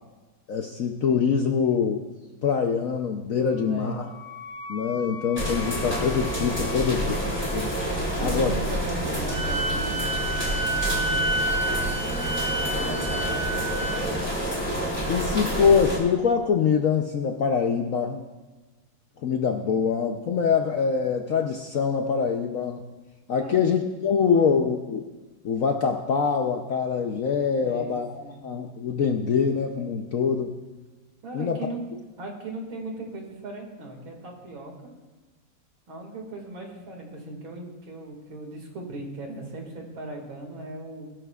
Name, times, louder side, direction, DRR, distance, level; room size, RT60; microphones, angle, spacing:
voice 1, 0.5-2.0 2.4-4.1 4.7-7.2 7.5-7.7 8.2-8.5 15.1-18.2 19.2-22.9 23.3-25.1 25.4-30.6 31.3-31.7, left 6 dB, 65° left, 4 dB, 0.8 m, -24 dB
Wind instrument woodwind instrument, 3.5-8.3, left 6 dB, 25° left, 4.6 m, -42 dB
voice 2, 3.5-4.0 6.7-7.1 8.2-11.9 12.4-14.3 23.4-23.7 24.3-24.6 27.6-28.4 31.2-31.8 32.2-34.7 35.9-41.1, right 2 dB, 85° right, 1 dB, 2.9 m, -38 dB
sound 1, 5.4-16.0, equal, 5° left, 2.9 m, -28 dB
Wind instrument woodwind instrument 2, 9.3-14.0, right 2 dB, 50° right, 0.7 m, -29 dB
20.0 x 12.0 x 2.4 m, 1.2 s
omnidirectional pair, 2.1 m